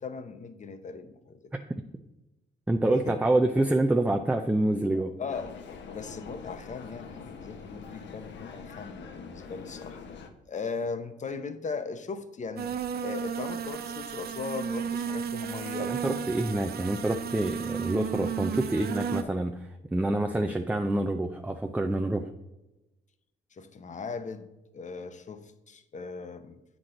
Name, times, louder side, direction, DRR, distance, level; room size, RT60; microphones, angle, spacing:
voice 1, 0.0-1.4 3.1-3.2 4.9-5.5 5.9-10.0 10.5-12.7 13.0-15.9 23.5-26.6, left 5 dB, 35° left, 10 dB, 0.8 m, -38 dB
voice 2, 2.7-5.1 15.8-22.2, right 1 dB, 5° right, 5 dB, 0.5 m, -27 dB
sound 1, 5.3-10.3, left 5 dB, 65° left, 1.0 m, -44 dB
sound 2, 12.6-19.2, right 7 dB, 50° right, 0.6 m, -33 dB
8.1 x 6.1 x 3.8 m, 0.98 s
cardioid pair, 90°, 20 cm